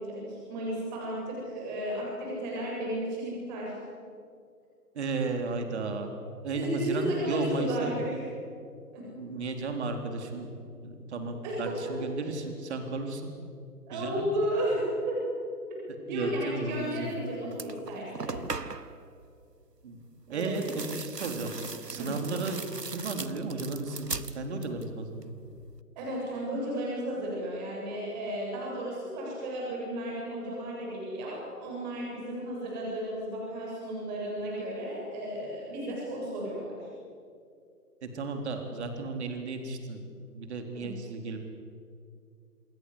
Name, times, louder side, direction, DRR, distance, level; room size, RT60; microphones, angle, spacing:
voice 1, 0.0-3.8 6.5-8.3 8.9-9.1 11.4-11.7 13.9-15.2 15.9-18.4 20.3-20.9 22.0-22.2 26.0-36.9 40.7-40.9, right 1 dB, 30° right, -3 dB, 7.7 m, -34 dB
voice 2, 4.9-6.1 6.4-8.0 9.2-10.5 10.8-13.3 13.9-14.3 16.1-17.1 19.8-20.0 20.3-21.5 21.8-22.6 22.9-25.3 38.0-40.1 40.3-41.4, right 3 dB, 45° right, 5 dB, 3.7 m, -34 dB
sound 1, 17.1-17.2 17.5-19.0 20.3-24.9 25.2-25.8, right 4 dB, 90° right, 1.4 m, -39 dB
28.0 x 21.5 x 8.0 m, 2.4 s
figure-of-eight pair, 140°, 47 cm